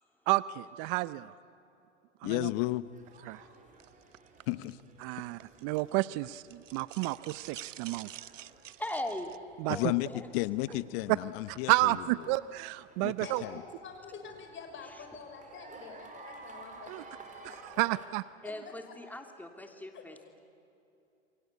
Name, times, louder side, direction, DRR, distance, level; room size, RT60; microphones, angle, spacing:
voice 1, 0.3-1.3 2.2-2.5 3.3-3.4 5.0-8.1 9.6-9.8 11.5-12.4 13.0-13.4 16.9-17.0 17.4-18.2, right 20 dB, 50° right, 17 dB, 0.7 m, -31 dB
voice 2, 2.2-2.8 4.5-4.8 9.7-11.9 13.0-13.1 13.4-13.5, left 19 dB, 55° left, 17 dB, 1.0 m, -32 dB
sound 1, 2.8-18.1, right 3 dB, 20° right, 4.8 m, -55 dB
sound 2, 3.8-6.0 6.2-9.4, right 12 dB, 90° right, 0.8 m, -48 dB
voice 3, 8.8-9.3 9.6-10.3 10.7-10.8 18.4-20.4, left 1 dB, 5° left, 5 dB, 3.1 m, -40 dB
voice 4, 13.2-18.0 18.4-18.9 19.9-20.0, left 5 dB, 30° left, 5 dB, 6.2 m, -48 dB
28.5 x 23.5 x 8.4 m, 2.7 s
hypercardioid pair, 110°, 36 cm